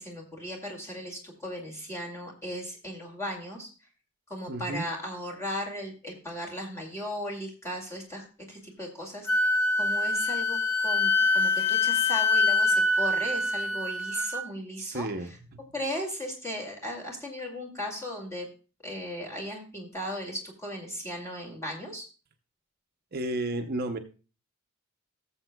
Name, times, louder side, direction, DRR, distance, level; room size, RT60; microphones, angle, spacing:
voice 1, 0.0-3.7 4.3-15.4 15.7-18.5 18.8-22.0, equal, 15° left, -1 dB, 2.2 m, -37 dB
voice 2, 4.5-4.9 14.8-15.6 23.1-24.0, right 1 dB, 45° right, 6 dB, 0.7 m, -32 dB
Wind instrument woodwind instrument, 9.3-14.4, left 3 dB, 55° left, 1.1 m, -25 dB
17.5 x 7.2 x 2.2 m, 0.35 s
head